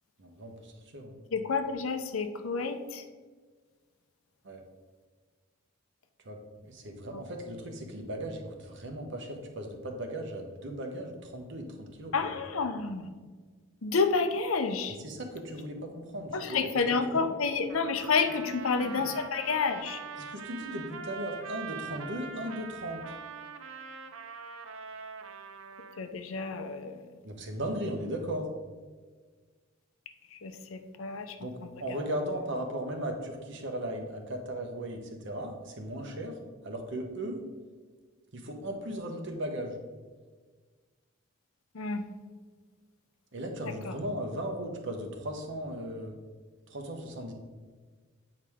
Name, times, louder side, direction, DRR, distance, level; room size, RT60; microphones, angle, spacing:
voice 1, 0.2-1.2 4.4-4.6 6.2-12.3 15.0-17.3 18.4-19.1 20.3-23.0 27.2-28.5 31.4-36.4 36.6-37.4 38.3-39.8 43.3-46.1 46.7-47.3, right 1 dB, 60° right, 4 dB, 1.0 m, -37 dB
voice 2, 1.3-3.1 7.1-7.2 12.1-13.1 13.8-15.0 16.3-20.0 26.0-27.1 30.3-31.4 31.9-32.0 41.7-42.1 43.6-43.9, left 4 dB, 85° left, 8 dB, 0.7 m, -30 dB
Trumpet, 17.7-26.0, right 5 dB, 80° right, 0.6 m, -43 dB
8.4 x 4.8 x 3.6 m, 1.4 s
head